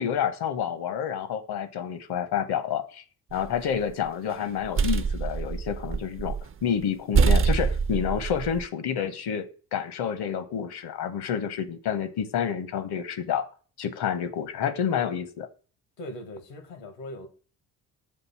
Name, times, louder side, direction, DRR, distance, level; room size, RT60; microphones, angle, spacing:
voice 1, 0.0-3.0 3.3-6.4 6.6-9.5 9.7-13.5 13.8-15.5, left 8 dB, 60° left, 1.1 m, -29 dB
sound 1, 3.3-3.9 4.4-6.5 6.8-6.9 7.1-8.7, right 5 dB, 30° right, 0.5 m, -25 dB
voice 2, 16.0-17.3, left 1 dB, 75° left, 1.7 m, -40 dB
6.8 x 2.7 x 5.6 m
hypercardioid pair, 45°, 45 cm